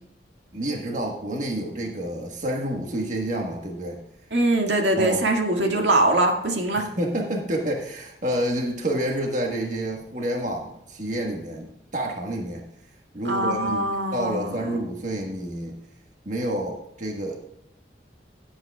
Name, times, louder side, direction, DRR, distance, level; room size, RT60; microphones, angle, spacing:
voice 1, 0.5-4.0 5.0-5.2 6.8-12.6 13.1-15.7 16.2-17.5, right 1 dB, 45° right, 1 dB, 1.4 m, -29 dB
voice 2, 4.3-6.9 13.2-14.7, right 2 dB, 80° right, 2 dB, 2.0 m, -22 dB
16.5 x 8.5 x 2.3 m, 0.82 s
head